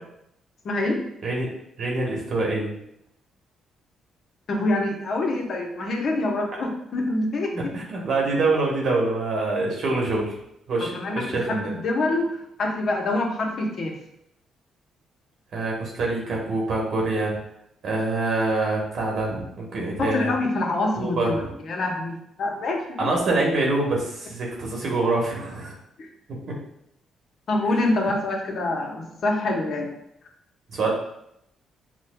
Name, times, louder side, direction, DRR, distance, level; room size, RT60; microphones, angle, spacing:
voice 1, 0.6-1.0 4.5-7.7 10.9-12.3 12.6-13.9 20.0-22.1 22.4-23.1 26.0-26.1 27.5-29.9, left 2 dB, 55° left, 1 dB, 0.8 m, -25 dB
voice 2, 1.2-1.5 1.8-2.7 7.5-10.3 10.7-11.7 15.5-17.4 17.8-20.3 21.0-21.5 23.0-25.7 30.7-30.9, right 2 dB, 60° right, -2 dB, 1.0 m, -25 dB
6.1 x 2.2 x 2.2 m, 0.77 s
cardioid pair, 90°, 0 cm